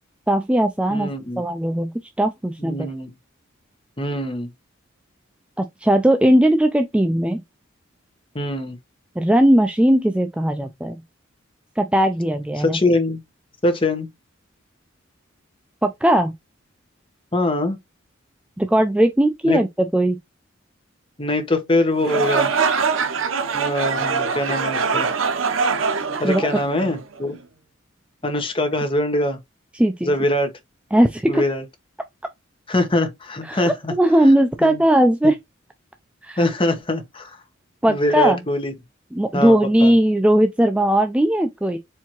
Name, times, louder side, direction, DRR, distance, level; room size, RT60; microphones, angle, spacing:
voice 1, 0.3-1.1 1.4-1.9 2.2-2.8 5.6-7.4 9.2-11.0 11.8-12.8 15.8-16.3 18.6-20.2 26.2-26.5 29.7-30.1 30.9-31.4 33.4-35.4 36.2-36.4 37.8-38.4 39.1-41.8, right 1 dB, 5° right, 0.3 m, -18 dB
voice 2, 0.9-1.4 2.6-3.1 4.0-4.5 8.3-8.8 12.6-13.2 13.6-14.1 17.3-17.8 19.4-19.6 21.2-22.5 23.5-25.1 26.2-27.3 28.2-29.4 30.0-30.5 31.3-31.6 32.7-33.9 34.6-34.8 36.4-37.4 37.9-38.7 39.3-39.9, left 1 dB, 25° left, 1.0 m, -23 dB
sound 1, 22.0-27.2, right 5 dB, 85° right, 0.7 m, -23 dB
4.5 x 3.4 x 2.9 m
head